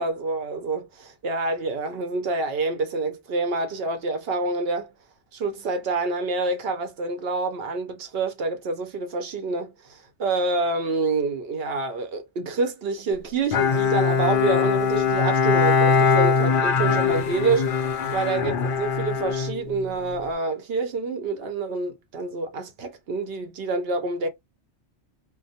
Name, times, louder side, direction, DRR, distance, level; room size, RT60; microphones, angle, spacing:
voice 1, 0.0-4.9 5.3-24.3, right 3 dB, 60° right, 0.8 m, -27 dB
Bowed string instrument, 13.5-20.2, left 5 dB, 60° left, 0.6 m, -22 dB
2.3 x 2.1 x 2.7 m
omnidirectional pair, 1.2 m